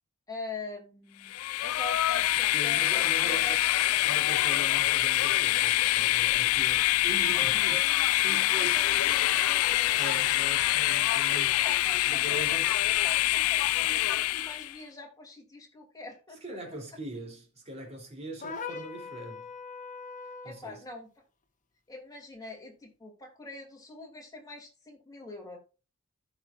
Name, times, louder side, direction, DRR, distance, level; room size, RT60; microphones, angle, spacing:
voice 1, 0.3-1.3 1.6-3.6 7.3-10.1 11.6-12.6 12.9-16.4 20.4-21.1 21.9-25.6, left 2 dB, 20° left, 2.9 m, -44 dB
Train, 1.3-14.7, left 15 dB, 90° left, 0.3 m, -25 dB
voice 2, 2.5-3.6 4.0-7.8 8.2-8.8 9.9-11.6 12.1-12.9 16.4-19.5 20.4-20.8, right 1 dB, 30° right, 3.3 m, -41 dB
sound 1, 18.4-20.6, left 4 dB, 40° left, 1.2 m, -40 dB
15.0 x 6.1 x 2.5 m
head